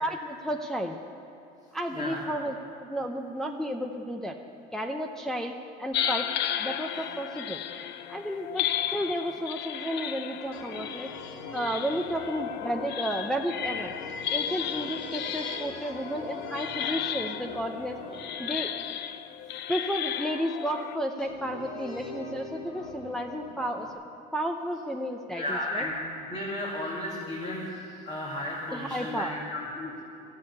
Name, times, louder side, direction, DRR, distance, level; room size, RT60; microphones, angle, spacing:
voice 1, 0.0-1.0 1.7-4.4 4.7-6.3 6.6-7.6 8.1-13.9 14.3-18.0 18.4-18.7 19.7-23.9 24.3-25.8 28.7-29.4, equal, ahead, 1 dB, 0.7 m, -32 dB
voice 2, 1.9-2.2 25.3-25.9 26.3-30.0, left 1 dB, 35° left, -4 dB, 2.5 m, -34 dB
sound 1, 5.9-21.0, left 10 dB, 60° left, 0.6 m, -34 dB
sound 2, 8.7-9.2 10.5-20.2 21.2-23.9, left 3 dB, 85° left, 1.9 m, -42 dB
13.0 x 8.4 x 9.7 m, 2.7 s
supercardioid pair, 100°, 20 cm